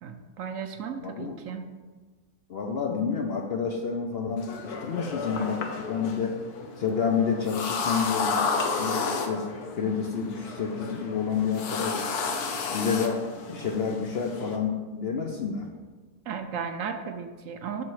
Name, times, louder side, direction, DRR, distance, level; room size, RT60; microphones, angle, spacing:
voice 1, 0.0-1.7 16.3-17.8, right 6 dB, 65° right, 7 dB, 0.9 m, -35 dB
voice 2, 1.0-1.4 2.5-6.4 6.8-8.4 8.8-9.5 9.8-12.0 12.7-15.7, left 6 dB, 55° left, 2 dB, 0.7 m, -29 dB
sound 1, 4.4-14.6, left 4 dB, 80° left, 1.4 m, -32 dB
7.4 x 6.1 x 4.7 m, 1.3 s
omnidirectional pair, 1.6 m